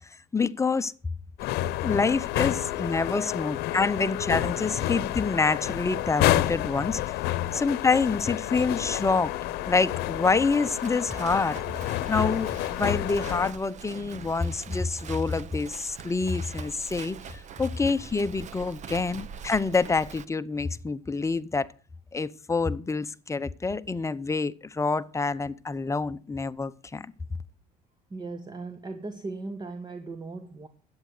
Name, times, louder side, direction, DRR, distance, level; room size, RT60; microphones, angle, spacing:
voice 1, 0.3-0.9 1.8-7.2 7.5-9.3 9.7-11.6 12.1-21.7 22.1-27.0, left 4 dB, 20° left, 0.8 m, -27 dB
sound 1, 1.4-13.5, left 15 dB, 75° left, 0.9 m, -29 dB
Livestock farm animals working animals, 8.9-20.2, right 7 dB, 45° right, 1.0 m, -44 dB
voice 2, 28.1-30.7, right 3 dB, 25° right, 1.4 m, -37 dB
13.5 x 8.9 x 6.6 m
cardioid pair, 105°, 17 cm